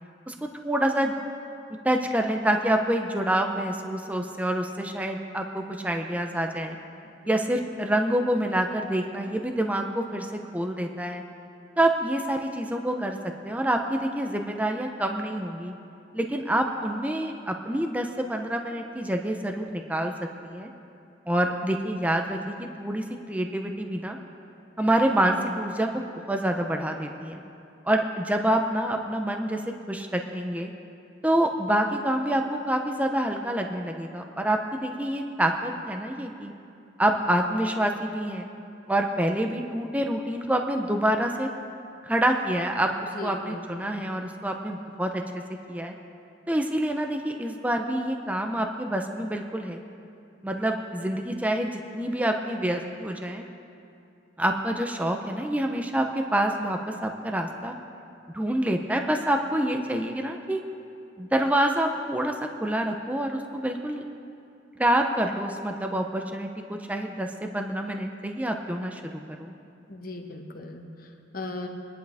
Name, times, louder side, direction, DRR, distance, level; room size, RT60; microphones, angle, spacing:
voice 1, 0.6-1.2 1.8-6.8 7.3-11.2 11.8-13.2 13.4-15.7 16.1-20.1 20.4-20.7 21.3-24.2 24.8-27.4 27.9-29.6 29.9-30.7 31.2-36.5 37.0-38.5 38.9-41.5 42.0-45.4 45.7-46.0 46.5-49.8 50.4-53.4 54.4-57.8 58.3-60.6 61.2-64.0 64.8-69.5, right 1 dB, 10° right, 3 dB, 0.6 m, -27 dB
voice 2, 43.2-43.9 69.9-70.8 71.3-71.7, left 2 dB, 50° left, 3 dB, 1.3 m, -37 dB
22.5 x 10.5 x 3.5 m, 2.6 s
head